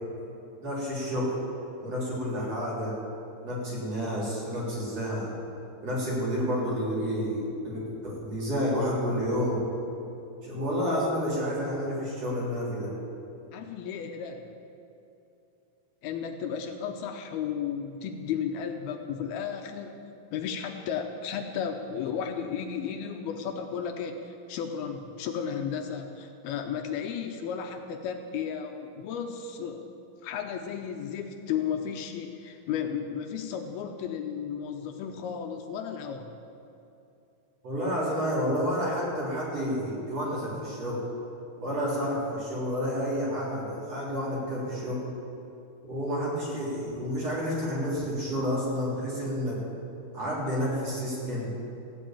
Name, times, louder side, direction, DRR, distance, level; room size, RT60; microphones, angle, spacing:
voice 1, 0.6-1.3 1.8-2.9 3.4-5.3 5.8-9.6 10.4-12.9 37.6-41.0 41.6-45.0 45.8-49.6 50.1-51.5, equal, 40° right, -6 dB, 4.5 m, -30 dB
voice 2, 13.5-14.5 16.0-20.0 20.3-29.9 30.2-36.3, left 7 dB, 80° left, 5 dB, 2.6 m, -34 dB
15.0 x 8.3 x 8.8 m, 2.7 s
omnidirectional pair, 4.6 m